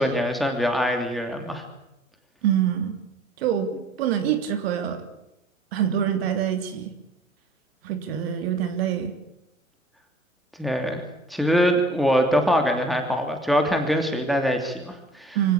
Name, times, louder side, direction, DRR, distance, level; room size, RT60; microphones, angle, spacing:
voice 1, 0.0-1.6 10.6-11.0 11.3-15.4, equal, ahead, 4 dB, 2.8 m, -23 dB
voice 2, 2.4-3.0 3.4-3.7 4.0-5.0 5.7-6.9 7.8-9.2 15.3-15.5, right 10 dB, 45° right, 9 dB, 3.2 m, -25 dB
24.5 x 17.5 x 8.6 m, 0.88 s
hypercardioid pair, 135°, 40 cm